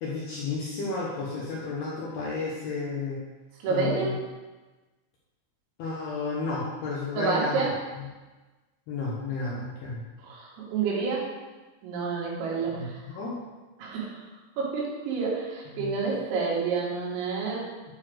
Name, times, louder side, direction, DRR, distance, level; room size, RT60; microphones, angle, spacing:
voice 1, 0.0-3.2 3.7-4.1 5.8-7.6 8.9-10.0 12.7-13.4 15.8-15.9, left 3 dB, 75° left, -5 dB, 2.5 m, -32 dB
voice 2, 3.6-4.2 7.2-7.7 10.2-11.2 11.8-13.0 13.8-14.2 14.6-17.7, right 4 dB, 80° right, -4 dB, 4.5 m, -29 dB
9.4 x 4.1 x 6.3 m, 1.2 s
omnidirectional pair, 5.9 m